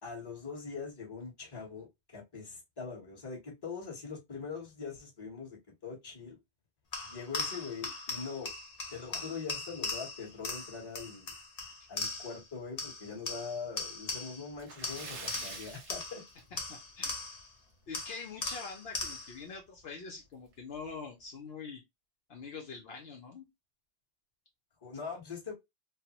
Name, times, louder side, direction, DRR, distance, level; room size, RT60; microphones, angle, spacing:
voice 1, 0.0-6.4 7.0-8.5 8.9-11.3 11.9-16.2 24.8-25.5, left 5 dB, 20° left, 1.1 m, -42 dB
sound 1, 6.9-12.5 12.8-14.5 14.8-17.5 17.9-19.4, left 3 dB, 40° left, 0.7 m, -39 dB
Splash splatter, 14.5-16.9 17.2-17.4 17.8-17.9 19.4-19.5 19.8-19.9 20.5-20.8, right 3 dB, 85° right, 1.2 m, -46 dB
voice 2, 16.7-17.1 17.9-21.8 22.3-23.5, left 5 dB, 65° left, 0.9 m, -44 dB
3.2 x 2.0 x 2.8 m
omnidirectional pair, 1.1 m